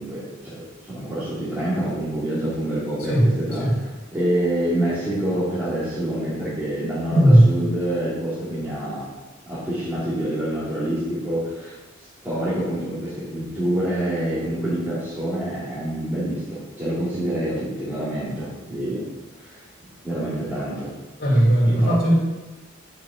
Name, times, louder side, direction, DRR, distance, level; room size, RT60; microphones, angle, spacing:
voice 1, 0.0-9.1 9.5-11.8 12.2-19.1 19.4-19.6 20.0-20.9 21.3-22.0, right 1 dB, 10° right, -11 dB, 2.9 m, -27 dB
voice 2, 7.1-7.5 21.2-22.1, right 1 dB, 50° left, -3 dB, 2.8 m, -16 dB
6.9 x 5.7 x 7.3 m, 1.2 s
head